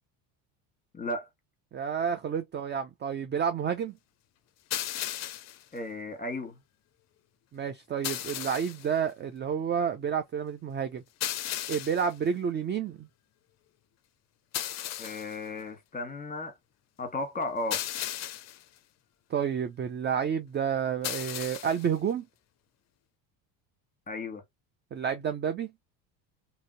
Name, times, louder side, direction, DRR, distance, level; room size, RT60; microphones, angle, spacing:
voice 1, 0.9-1.3 5.7-6.6 15.0-16.5 17.0-17.8 24.1-24.4, left 2 dB, 20° left, 1.3 m, -35 dB
voice 2, 1.7-3.9 7.5-11.0 11.7-13.1 19.3-22.3 24.9-25.7, right 7 dB, 25° right, 0.4 m, -30 dB
sound 1, 4.7-5.6 8.0-8.9 11.2-12.1 14.5-15.4 17.7-18.6 21.0-21.9, left 12 dB, 40° left, 0.5 m, -35 dB
2.8 x 2.7 x 2.6 m
supercardioid pair, 100°, 46 cm